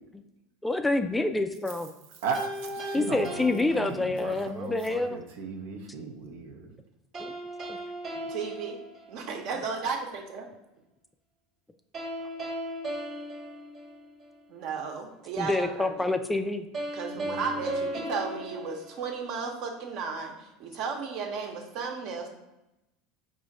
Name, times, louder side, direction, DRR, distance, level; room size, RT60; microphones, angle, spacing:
voice 1, 0.6-1.9 2.9-5.2 7.2-7.3 7.7-7.8 15.4-16.7, left 2 dB, 10° left, 7 dB, 0.3 m, -27 dB
voice 2, 2.2-6.8 17.1-17.5, right 5 dB, 80° right, 2 dB, 0.7 m, -36 dB
sound 1, 2.3-4.5 7.1-9.6 11.9-14.5 16.7-19.6, right 1 dB, 35° right, 1.2 m, -37 dB
voice 3, 8.3-8.8 9.1-10.5 14.5-16.1 16.9-22.3, right 5 dB, 60° right, 2 dB, 1.0 m, -34 dB
4.8 x 2.5 x 4.1 m, 0.94 s
supercardioid pair, 115°, 0 cm